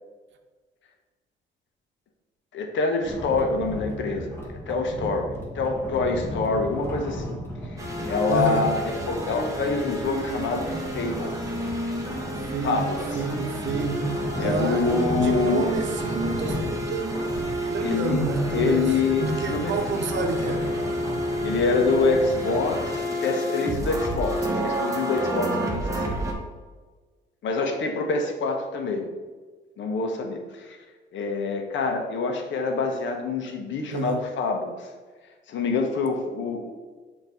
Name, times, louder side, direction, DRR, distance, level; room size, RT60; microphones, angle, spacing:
voice 1, 2.5-7.4 7.7-11.3 12.6-13.2 14.4-15.7 17.8-18.2 18.5-19.7 21.4-26.2 27.4-29.1 29.8-30.8 31.1-34.9 35.5-36.7, left 3 dB, 70° left, 3 dB, 1.0 m, -26 dB
sound 1, 3.0-23.0, left 1 dB, 10° left, 1.3 m, -35 dB
sound 2, 7.8-26.3, equal, 15° right, 1.2 m, -30 dB
voice 2, 8.3-8.7 12.5-17.2 17.7-20.6 33.9-34.2, right 4 dB, 70° right, 6 dB, 0.8 m, -29 dB
6.6 x 3.0 x 5.0 m, 1.4 s
cardioid pair, 90°, 20 cm